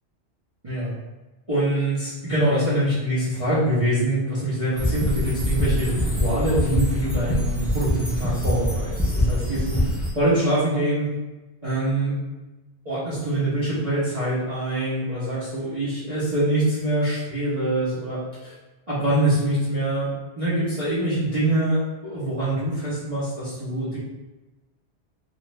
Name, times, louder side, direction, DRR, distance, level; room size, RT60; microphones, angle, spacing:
voice 1, 1.5-9.8 10.1-11.1 11.6-12.2 12.8-18.5 18.9-20.1 20.4-24.0, right 1 dB, 35° right, -12 dB, 0.8 m, -24 dB
sound 1, 4.8-10.1, equal, ahead, 0.5 m, -24 dB
2.5 x 2.4 x 3.1 m, 1.1 s
omnidirectional pair, 1.1 m